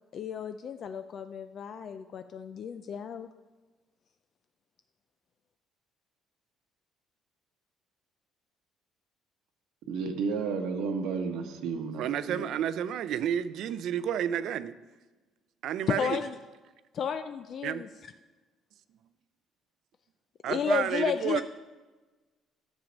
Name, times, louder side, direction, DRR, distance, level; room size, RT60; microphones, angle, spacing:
voice 1, 0.1-3.3 15.9-16.3 16.9-17.9 20.5-21.4, left 7 dB, 40° left, 9 dB, 0.3 m, -32 dB
voice 2, 9.9-12.5, right 5 dB, 80° right, 4 dB, 1.0 m, -32 dB
voice 3, 12.0-14.7 15.6-16.2 17.6-17.8 20.4-21.4, right 10 dB, 60° right, 14 dB, 0.5 m, -30 dB
10.5 x 7.3 x 5.2 m, 1.2 s
cardioid pair, 150°, 0 cm